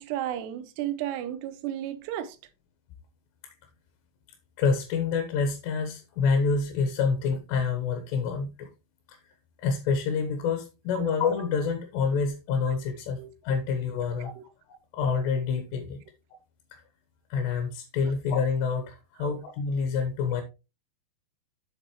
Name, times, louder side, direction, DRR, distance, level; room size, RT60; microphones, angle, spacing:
voice 1, 0.0-2.4 10.9-11.1 13.2-13.3 14.4-14.5 19.2-19.3, right 12 dB, 85° right, 2.8 m, -33 dB
voice 2, 4.6-8.7 9.1-9.2 9.6-14.3 14.9-16.0 16.7-16.8 17.3-20.4, left 5 dB, 80° left, 3.2 m, -27 dB
8.0 x 7.4 x 3.0 m
omnidirectional pair, 4.9 m